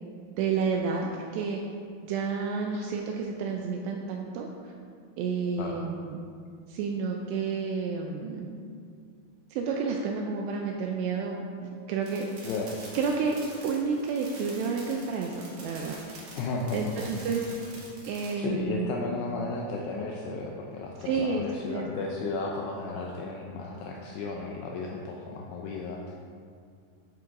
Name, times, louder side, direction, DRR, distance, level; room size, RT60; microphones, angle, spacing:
voice 1, 0.4-1.6 2.0-4.7 5.2-6.2 6.7-8.5 9.5-11.4 11.9-12.3 12.9-13.4 13.6-16.0 16.7-17.4 18.0-18.9 21.0-21.4 21.7-22.1, right 5 dB, 85° right, 1 dB, 2.5 m, -30 dB
sound 1, 12.0-18.3, right 2 dB, 60° right, 1.9 m, -46 dB
voice 2, 12.4-12.8 16.3-17.1 18.4-26.2, left 3 dB, 90° left, -1 dB, 2.3 m, -34 dB
11.0 x 7.6 x 2.6 m, 2.2 s
omnidirectional pair, 5.4 m